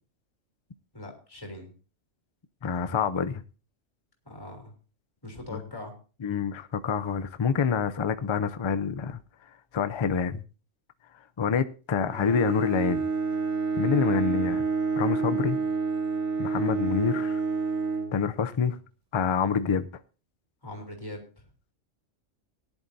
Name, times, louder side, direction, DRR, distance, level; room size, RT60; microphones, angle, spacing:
voice 1, 0.9-1.7 4.2-4.7 5.2-5.9 20.6-21.4, left 1 dB, 15° left, 3.4 m, -41 dB
voice 2, 2.6-3.4 5.5-5.6 6.2-9.2 9.7-10.4 11.4-13.0 13.8-14.6 15.0-15.6 16.4-17.4 18.1-18.8 19.1-19.9, left 6 dB, 40° left, 0.4 m, -27 dB
Bowed string instrument, 12.1-18.8, right 4 dB, 65° right, 2.4 m, -29 dB
18.0 x 11.0 x 2.7 m
omnidirectional pair, 1.3 m